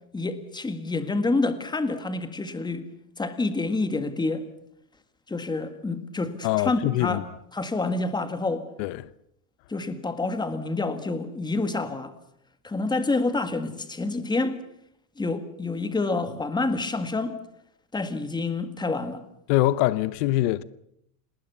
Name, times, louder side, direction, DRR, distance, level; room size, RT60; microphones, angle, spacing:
voice 1, 0.1-2.9 3.2-4.5 5.3-7.2 7.5-8.7 9.7-12.1 12.6-14.6 15.2-17.3 17.9-19.2, left 3 dB, 10° left, 1.7 m, -28 dB
voice 2, 6.4-7.2 8.8-9.0 19.5-20.6, left 16 dB, 80° left, 1.0 m, -23 dB
28.5 x 20.0 x 7.0 m
cardioid pair, 155°, 47 cm